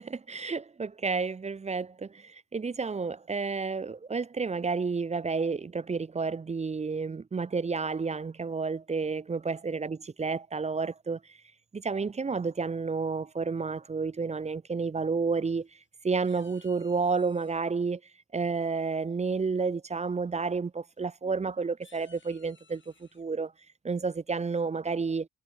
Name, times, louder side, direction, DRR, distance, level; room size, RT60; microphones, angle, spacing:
voice 1, 0.0-11.2 11.7-15.7 16.0-18.0 18.3-22.8 23.2-23.5 23.8-25.3, right 4 dB, 20° right, 0.6 m, -30 dB
sound 1, 15.3-15.9 16.2-17.6 19.1-19.5 19.9-20.1 20.4-20.5 20.9-21.0 21.6-23.2, left 5 dB, 40° left, 5.7 m, -61 dB
cardioid pair, 90°, 30 cm